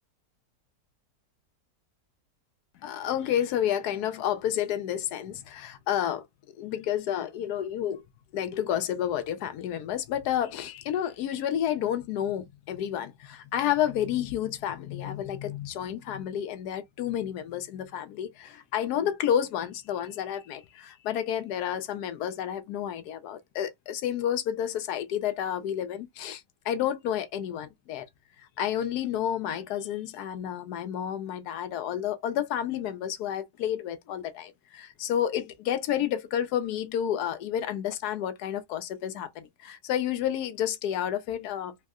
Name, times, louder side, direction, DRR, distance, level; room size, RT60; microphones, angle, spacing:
voice 1, 2.8-6.2 6.6-8.0 8.3-28.1 28.6-41.7, left 10 dB, 75° left, 1.1 m, -30 dB
3.5 x 2.1 x 3.5 m
omnidirectional pair, 1.8 m